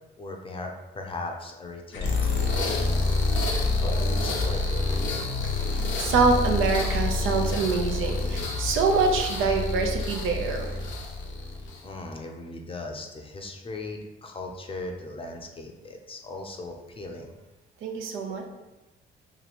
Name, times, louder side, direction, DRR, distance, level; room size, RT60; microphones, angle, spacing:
voice 1, 0.2-3.1 3.8-5.5 11.8-17.3, left 2 dB, 25° left, 2 dB, 0.6 m, -38 dB
sound 1, 1.9-11.9, left 3 dB, 70° left, 0.7 m, -27 dB
voice 2, 5.7-10.7 17.8-18.5, right 4 dB, 85° right, 3 dB, 0.6 m, -25 dB
3.1 x 2.6 x 4.1 m, 1.0 s
cardioid pair, 90°, 20 cm